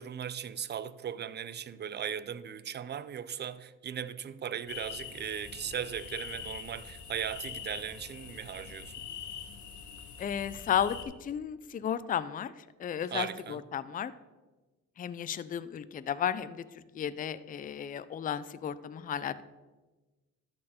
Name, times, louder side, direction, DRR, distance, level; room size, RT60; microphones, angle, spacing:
voice 1, 0.0-9.1 13.1-13.6, right 8 dB, 35° right, 0.4 m, -38 dB
sound 1, 4.7-11.0, left 7 dB, 75° left, 1.1 m, -44 dB
voice 2, 10.2-12.5 12.8-14.1 15.0-19.4, left 9 dB, 30° left, 0.4 m, -34 dB
13.0 x 4.4 x 4.2 m
cardioid pair, 90°, 30 cm